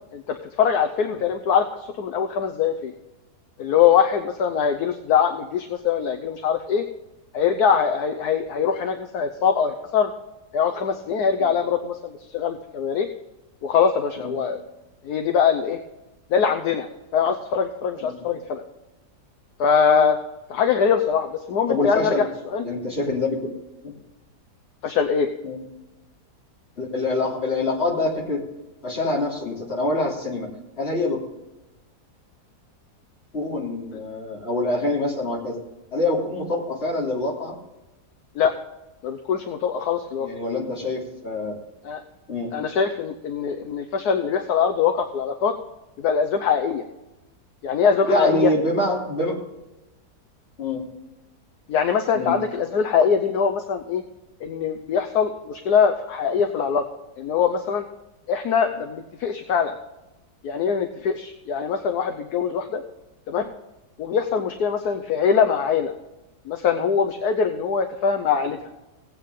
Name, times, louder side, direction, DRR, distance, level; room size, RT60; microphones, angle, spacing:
voice 1, 0.1-2.9 3.6-6.8 7.3-10.1 10.5-13.1 13.6-14.6 15.0-15.8 16.3-18.6 19.6-20.2 20.5-22.7 24.8-25.3 38.3-38.5 39.0-40.3 41.8-42.0 42.5-45.5 46.0-46.8 47.6-48.5 51.7-54.0 54.4-56.8 57.2-57.8 58.3-59.7 60.4-62.8 63.3-63.5 64.0-65.9 66.5-68.6, left 7 dB, 70° left, 5 dB, 1.3 m, -22 dB
voice 2, 21.7-22.2 22.6-23.5 23.8-23.9 25.4-25.6 26.8-28.4 28.8-30.5 30.8-31.2 33.3-35.6 35.9-37.6 40.2-41.6 42.3-42.5 48.1-49.4 50.6-50.8 52.1-52.4, left 2 dB, 35° left, -2 dB, 3.2 m, -25 dB
18.0 x 8.5 x 3.7 m, 1.0 s
omnidirectional pair, 1.8 m